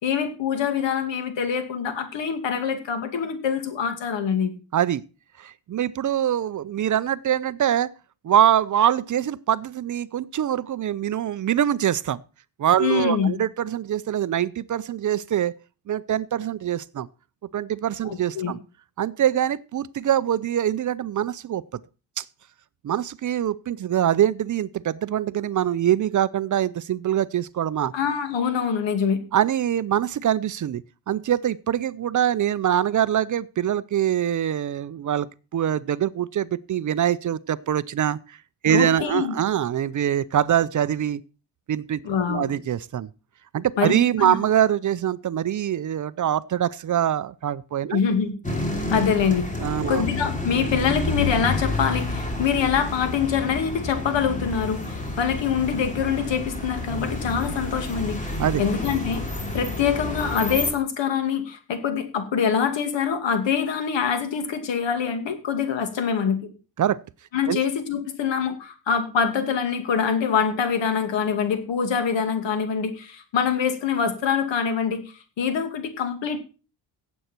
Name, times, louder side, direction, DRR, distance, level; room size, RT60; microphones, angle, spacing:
voice 1, 0.0-4.5 12.8-13.4 18.0-18.5 27.9-29.2 38.7-39.4 42.0-42.5 43.8-44.4 47.9-48.3 48.9-49.5 49.9-59.2 59.5-66.5 67.3-76.4, left 7 dB, 80° left, 2.5 m, -25 dB
voice 2, 5.4-7.9 8.2-12.2 12.6-15.5 15.9-17.1 17.5-18.6 19.0-21.6 22.2-22.3 22.8-27.9 29.3-38.2 38.6-41.2 41.7-42.0 42.3-43.1 43.5-48.0 49.6-50.0 58.4-58.6 66.8-67.0 67.5-67.6, right 10 dB, 45° right, 0.5 m, -24 dB
sound 1, 48.4-60.7, left 2 dB, 15° left, 2.8 m, -29 dB
16.0 x 8.1 x 4.4 m
cardioid pair, 130°, 44 cm